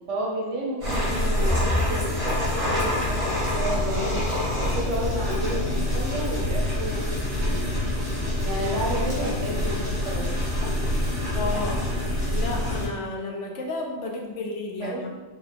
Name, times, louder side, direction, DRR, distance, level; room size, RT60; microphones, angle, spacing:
voice 1, 0.1-2.1 2.6-4.3 4.6-7.7 8.4-10.3 14.8-15.1, right 1 dB, 75° right, -3 dB, 1.4 m, -31 dB
sound 1, 0.8-12.9, left 1 dB, 50° right, 1.4 m, -26 dB
voice 2, 11.3-11.9 12.3-15.1, left 2 dB, 75° left, 1 dB, 1.0 m, -32 dB
4.9 x 2.3 x 3.5 m, 1.2 s
omnidirectional pair, 1.2 m